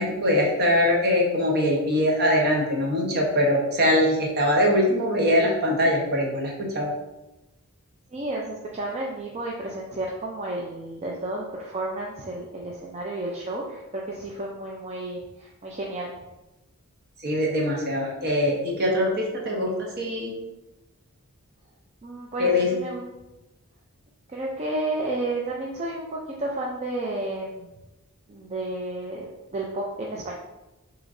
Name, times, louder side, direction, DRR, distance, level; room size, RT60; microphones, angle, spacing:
voice 1, 0.0-6.9 17.2-20.3 22.4-22.7, left 1 dB, 50° right, -1 dB, 1.1 m, -22 dB
voice 2, 8.1-16.2 22.0-23.1 24.3-27.7 28.3-29.3 29.5-30.3, right 2 dB, 30° right, -2 dB, 0.4 m, -32 dB
6.3 x 3.0 x 2.6 m, 1.0 s
head